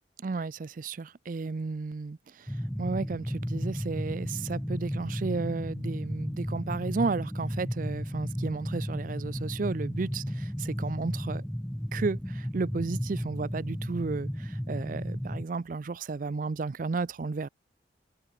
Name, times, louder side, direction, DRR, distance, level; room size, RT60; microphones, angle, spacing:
voice 1, 0.2-11.4 11.9-17.5, right 4 dB, 45° right, 0.4 m, -33 dB
sound 1, 2.5-15.4, equal, 5° left, 0.8 m, -34 dB
head